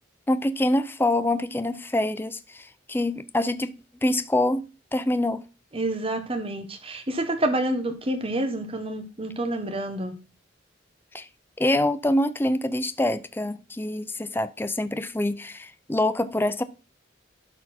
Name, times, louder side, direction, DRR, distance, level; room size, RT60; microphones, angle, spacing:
voice 1, 0.3-3.7 4.0-4.7 4.9-5.4 11.1-11.3 11.6-16.6, left 1 dB, 10° left, 0.5 m, -25 dB
voice 2, 5.7-10.1, right 1 dB, 30° right, 1.2 m, -28 dB
12.0 x 4.4 x 4.3 m
head